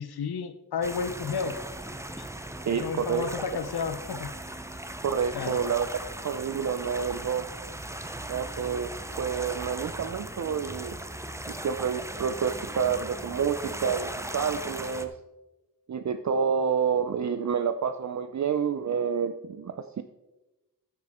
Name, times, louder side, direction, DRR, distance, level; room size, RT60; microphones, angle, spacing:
voice 1, 0.0-1.6 2.2-2.3 2.7-4.3 5.3-5.6, left 6 dB, 80° left, 11 dB, 0.7 m, -32 dB
sound 1, 0.8-15.1, right 1 dB, 10° right, 0.6 m, -38 dB
voice 2, 2.7-3.3 5.0-5.9 6.2-7.5 8.3-11.0 11.5-15.1 15.9-20.0, right 7 dB, 50° right, 9 dB, 0.5 m, -29 dB
14.0 x 8.0 x 3.6 m, 1.0 s
wide cardioid pair, 115°, 38 cm